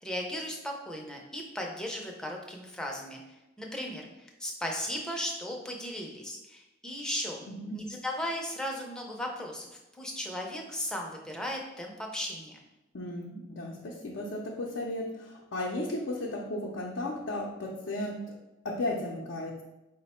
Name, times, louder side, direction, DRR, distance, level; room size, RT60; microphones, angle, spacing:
voice 1, 0.0-3.2 3.6-7.4 7.7-9.7 10.0-12.6, left 1 dB, 5° left, 0 dB, 0.5 m, -36 dB
voice 2, 7.5-7.8 12.9-18.3 18.6-19.6, left 1 dB, 70° left, -2 dB, 0.5 m, -35 dB
4.9 x 2.1 x 4.2 m, 0.98 s
head